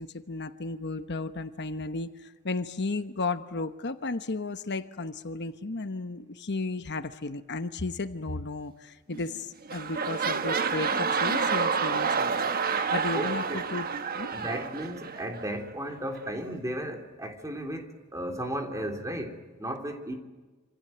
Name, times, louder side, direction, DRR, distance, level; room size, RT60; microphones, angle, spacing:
voice 1, 0.0-12.4 12.6-13.9 14.1-14.3, left 3 dB, 55° left, 9 dB, 1.1 m, -34 dB
sound 1, 9.1-9.4 9.6-15.5 16.2-16.3, right 5 dB, 45° right, 1.4 m, -29 dB
voice 2, 13.1-13.6 14.3-20.2, right 1 dB, 15° right, 4 dB, 3.4 m, -35 dB
27.0 x 27.0 x 7.9 m, 1.3 s
head